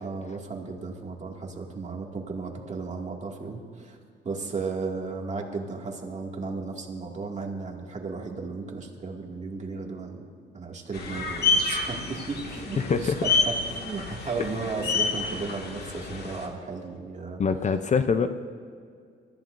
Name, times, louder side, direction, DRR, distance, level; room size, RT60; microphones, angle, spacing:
voice 1, 0.0-4.0 4.2-10.2 10.5-17.4, right 4 dB, 35° right, 0 dB, 2.2 m, -35 dB
sound 1, 10.9-16.5, left 4 dB, 55° left, 1.9 m, -29 dB
voice 2, 12.8-13.2 17.4-18.3, left 5 dB, 35° left, 10 dB, 0.6 m, -24 dB
22.5 x 14.0 x 2.6 m, 2.2 s
cardioid pair, 90°, 20 cm